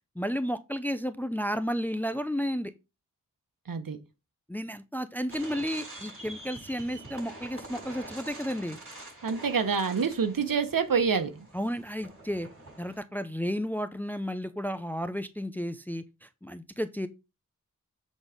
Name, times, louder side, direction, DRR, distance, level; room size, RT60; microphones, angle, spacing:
voice 1, 0.2-2.7 4.5-8.8 11.5-12.5 12.8-17.1, equal, 5° left, 0.6 m, -32 dB
voice 2, 3.7-4.0 9.2-11.5, right 6 dB, 85° right, 1.2 m, -27 dB
sound 1, 5.3-13.0, right 2 dB, 40° right, 5.7 m, -46 dB
8.0 x 4.1 x 5.0 m
wide cardioid pair, 70°, 33 cm